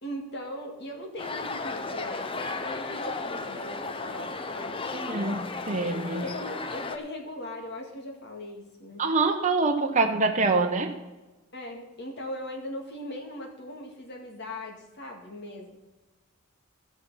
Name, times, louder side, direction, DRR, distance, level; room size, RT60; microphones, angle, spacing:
voice 1, 0.0-4.9 6.2-9.0 11.5-15.8, left 1 dB, 50° left, 1 dB, 2.1 m, -39 dB
sound 1, 1.2-7.0, left 3 dB, 25° left, 0.6 m, -34 dB
voice 2, 4.9-6.3 9.0-11.0, right 3 dB, 35° right, 3 dB, 0.8 m, -25 dB
15.5 x 6.0 x 5.6 m, 1.1 s
head